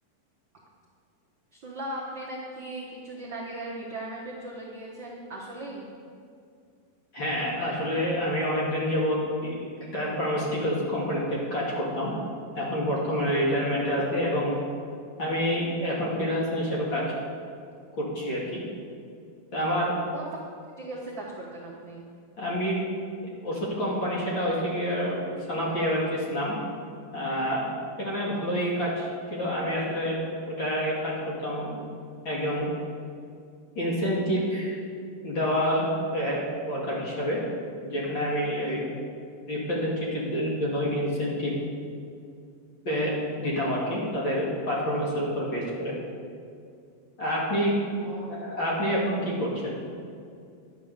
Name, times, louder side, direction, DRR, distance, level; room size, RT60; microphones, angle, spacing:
voice 1, 1.5-5.9 20.1-20.3 20.8-22.0 48.0-48.4, right 1 dB, 55° right, -5 dB, 1.3 m, -38 dB
voice 2, 7.1-9.5 9.9-12.1 12.5-14.6 15.2-17.0 18.0-18.6 19.5-19.9 22.4-22.8 23.4-26.5 27.1-27.7 28.0-30.2 30.5-31.8 32.2-32.7 33.8-34.8 35.2-37.4 37.8-38.8 39.5-41.5 42.9-46.0 47.2-47.7 48.3-49.8, equal, 40° left, -5 dB, 2.2 m, -28 dB
11.5 x 8.2 x 6.7 m, 2.3 s
omnidirectional pair, 4.1 m